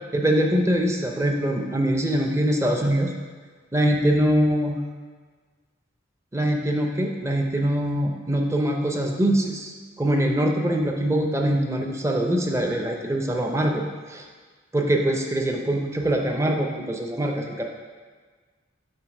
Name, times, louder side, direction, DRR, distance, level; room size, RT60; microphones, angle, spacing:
voice 1, 0.1-3.1 3.7-4.8 6.3-9.7 10.0-13.8 14.1-14.2 14.7-17.6, right 1 dB, 15° right, 2 dB, 0.5 m, -23 dB
7.9 x 3.2 x 5.3 m, 1.5 s
head